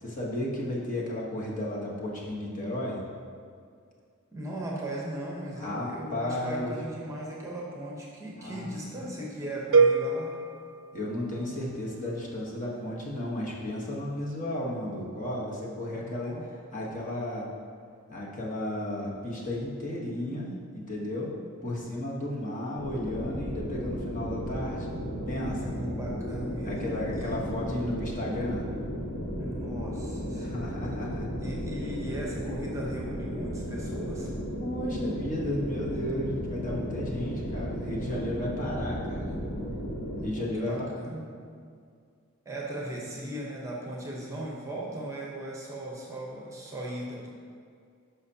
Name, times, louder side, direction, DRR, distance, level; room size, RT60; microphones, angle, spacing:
voice 1, 0.0-3.0 5.6-6.7 8.4-8.7 10.9-16.3 16.7-17.5 18.1-21.3 21.6-24.9 25.3-25.8 26.6-28.7 30.4-31.3 34.6-39.4 40.2-40.7 41.0-41.3, left 1 dB, 35° left, -4 dB, 1.1 m, -33 dB
voice 2, 4.3-10.4 15.9-16.4 25.6-27.4 29.4-30.7 31.4-34.3 40.2-41.2 42.4-47.3, right 1 dB, 15° right, -4 dB, 0.9 m, -38 dB
sound 1, 9.7-11.8, right 4 dB, 60° right, 0.4 m, -25 dB
sound 2, 22.8-40.2, equal, 80° left, 1.7 m, -34 dB
10.5 x 5.7 x 2.8 m, 2.2 s
head